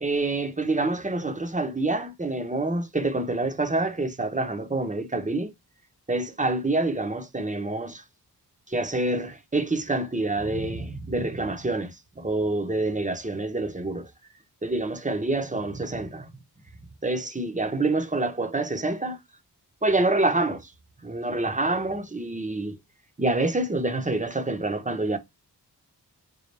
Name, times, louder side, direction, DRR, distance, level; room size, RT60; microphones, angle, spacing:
voice 1, 0.0-5.5 6.1-8.0 8.7-14.1 14.6-16.3 17.0-19.2 19.8-20.6 21.0-22.8 23.2-25.2, right 2 dB, 20° right, 0.9 m, -27 dB
5.4 x 2.1 x 3.3 m
cardioid pair, 45°, 42 cm